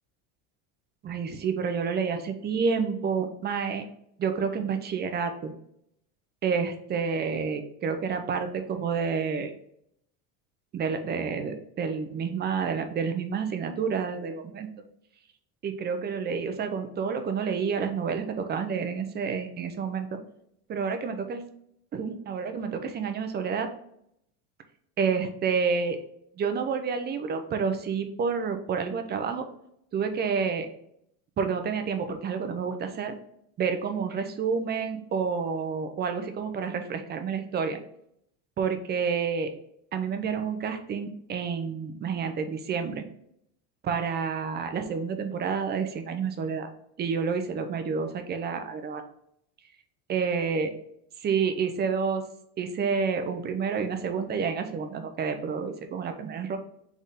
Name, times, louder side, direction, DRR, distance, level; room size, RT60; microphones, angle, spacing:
voice 1, 1.0-3.9 4.2-5.5 6.4-9.5 10.7-14.8 15.6-20.2 20.7-21.4 21.9-23.7 25.0-26.0 26.4-29.5 29.9-30.7 31.4-33.1 33.6-37.8 38.6-39.5 39.9-43.1 43.8-46.7 47.0-49.0 50.1-50.7 51.2-52.2 52.6-56.6, right 6 dB, 25° right, 7 dB, 0.6 m, -29 dB
4.1 x 3.6 x 3.5 m, 0.73 s
supercardioid pair, 135°, 38 cm